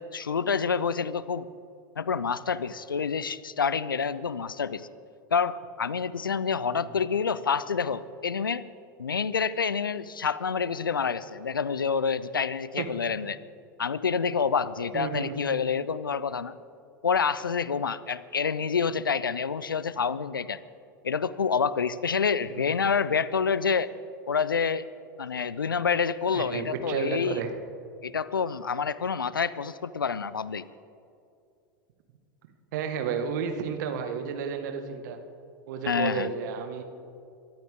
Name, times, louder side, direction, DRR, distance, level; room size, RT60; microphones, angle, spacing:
voice 1, 0.0-1.5 2.0-4.9 5.3-8.7 9.0-13.4 13.8-16.5 17.0-20.6 21.0-23.9 24.3-24.9 25.2-27.4 28.0-30.6 35.9-36.3, left 6 dB, 85° left, 17 dB, 0.5 m, -28 dB
voice 2, 14.9-15.4 22.6-22.7 26.3-27.5 32.7-35.2 35.7-36.8, right 6 dB, 60° right, 6 dB, 1.7 m, -32 dB
23.5 x 13.0 x 3.7 m, 2.5 s
figure-of-eight pair, 85°, 11 cm